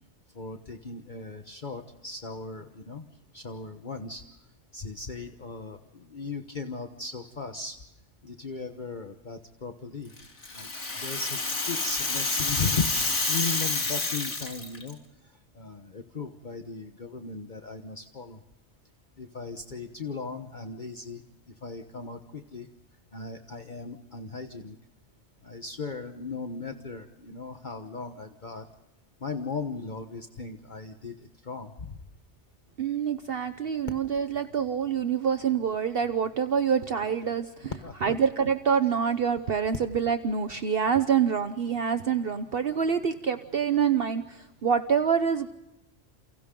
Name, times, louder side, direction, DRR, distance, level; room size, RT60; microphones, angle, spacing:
voice 1, 0.3-3.1 3.3-4.3 4.7-7.8 8.2-10.1 10.5-10.7 11.0-18.4 19.2-22.7 23.1-24.8 25.4-28.6 29.2-32.0 37.8-38.1, left 4 dB, 45° left, 6 dB, 1.3 m, -37 dB
Rattle (instrument), 10.2-14.9, left 3 dB, 85° left, 3.2 m, -29 dB
voice 2, 32.8-37.7 38.0-45.5, right 7 dB, 55° right, 9 dB, 1.1 m, -26 dB
29.5 x 29.5 x 3.8 m, 0.94 s
omnidirectional pair, 1.2 m